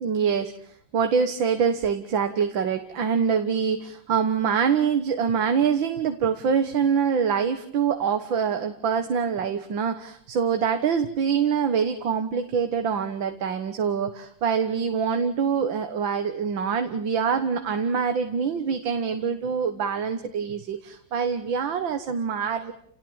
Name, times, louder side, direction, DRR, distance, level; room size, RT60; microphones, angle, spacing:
voice 1, 0.0-22.7, right 6 dB, 75° right, 8 dB, 2.2 m, -25 dB
29.5 x 19.0 x 9.0 m, 0.64 s
omnidirectional pair, 2.1 m